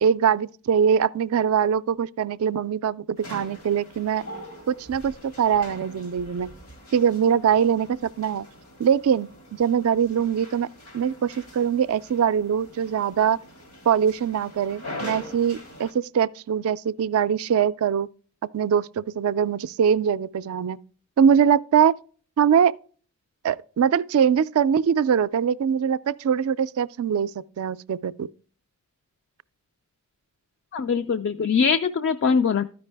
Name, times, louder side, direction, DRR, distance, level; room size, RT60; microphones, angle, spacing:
voice 1, 0.0-4.2 4.7-6.5 6.9-8.5 8.8-10.7 10.9-13.4 13.9-18.1 18.5-20.8 21.2-22.0 22.4-22.7 23.4-27.3 27.6-28.3, right 7 dB, 75° right, 0.3 m, -22 dB
sound 1, 3.2-15.9, left 1 dB, 85° left, 1.9 m, -43 dB
voice 2, 30.7-32.6, left 5 dB, 55° left, 0.3 m, -22 dB
13.0 x 5.3 x 3.3 m
head